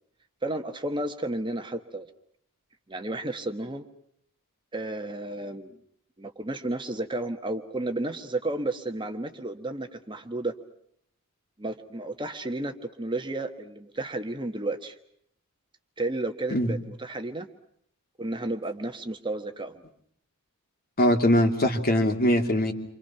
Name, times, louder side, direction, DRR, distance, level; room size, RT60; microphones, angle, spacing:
voice 1, 0.4-2.1 2.9-3.9 4.7-5.8 6.2-10.5 11.6-14.9 16.0-17.5 18.2-19.8, right 2 dB, 20° right, 6 dB, 1.4 m, -32 dB
voice 2, 21.0-22.7, equal, 45° left, 4 dB, 2.8 m, -22 dB
29.5 x 25.5 x 5.8 m, 0.68 s
head